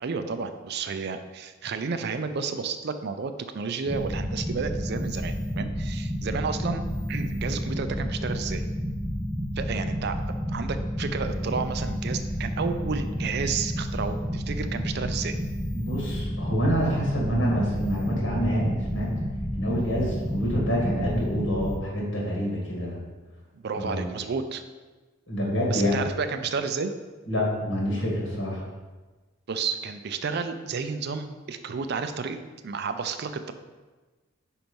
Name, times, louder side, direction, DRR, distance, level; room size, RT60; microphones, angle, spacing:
voice 1, 0.0-6.8 7.1-8.6 9.6-10.2 10.5-15.4 23.5-24.6 25.7-26.9 29.5-32.4 32.6-33.5, right 5 dB, 55° right, 9 dB, 0.4 m, -31 dB
sound 1, 3.9-21.8, equal, ahead, 0.4 m, -30 dB
voice 2, 15.7-19.1 19.5-23.0 23.8-24.1 25.3-26.0 27.3-28.6, equal, 60° left, -3 dB, 2.0 m, -27 dB
5.2 x 4.5 x 5.2 m, 1.3 s
head